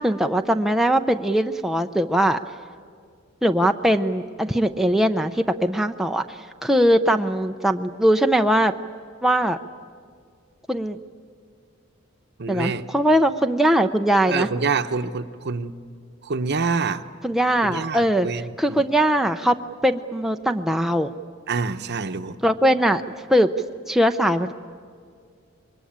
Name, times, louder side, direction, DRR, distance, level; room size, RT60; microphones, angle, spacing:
voice 1, 0.0-2.4 3.4-8.7 9.2-9.6 10.7-11.0 12.5-14.5 17.2-18.3 18.6-19.6 19.8-21.1 22.4-23.0 23.3-23.5 23.9-24.5, equal, ahead, 5 dB, 0.6 m, -20 dB
voice 2, 12.4-12.8 14.3-15.7 16.2-17.0 17.7-18.8 21.5-22.4, right 4 dB, 55° right, 10 dB, 0.9 m, -26 dB
25.5 x 22.5 x 8.8 m, 2.2 s
head